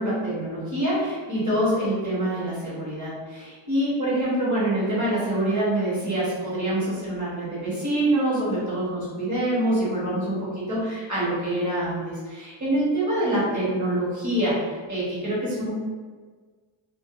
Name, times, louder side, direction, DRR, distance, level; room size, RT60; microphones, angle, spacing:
voice 1, 0.0-15.7, right 1 dB, 35° right, -9 dB, 1.2 m, -25 dB
2.5 x 2.3 x 2.4 m, 1.5 s
wide cardioid pair, 150°, 50 cm